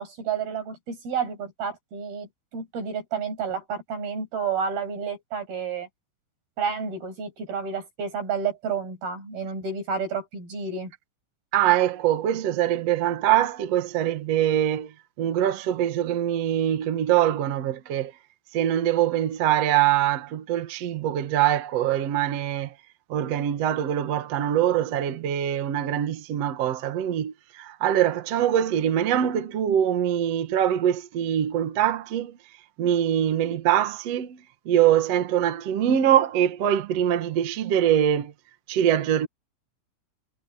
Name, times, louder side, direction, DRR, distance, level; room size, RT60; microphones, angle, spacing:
voice 1, 0.0-5.9 6.6-10.9, right 6 dB, 80° right, 9.0 m, -30 dB
voice 2, 11.5-18.1 18.5-22.7 23.1-32.4 32.8-38.3 38.7-39.3, right 11 dB, 55° right, 2.0 m, -23 dB
omnidirectional pair, 4.3 m